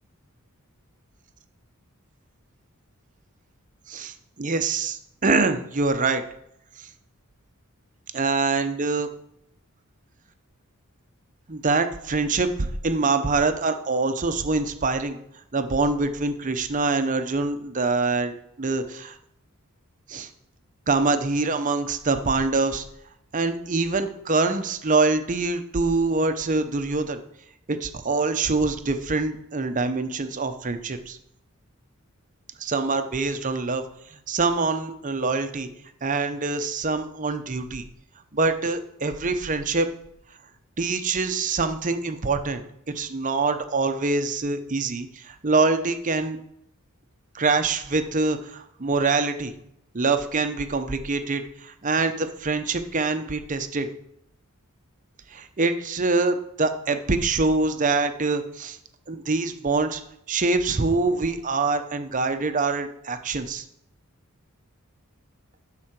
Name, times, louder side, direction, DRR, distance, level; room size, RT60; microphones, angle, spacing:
voice 1, 3.9-6.2 8.1-9.1 11.5-15.2 15.5-19.2 20.1-20.3 20.9-22.8 23.3-27.2 27.7-31.2 32.6-33.8 34.3-35.7 36.0-37.8 38.3-39.9 40.8-42.6 42.9-46.4 47.3-49.5 49.9-53.9 55.3-58.8 59.1-60.0 60.3-63.6, right 3 dB, 35° right, 8 dB, 0.7 m, -24 dB
11.0 x 3.9 x 5.9 m, 0.76 s
head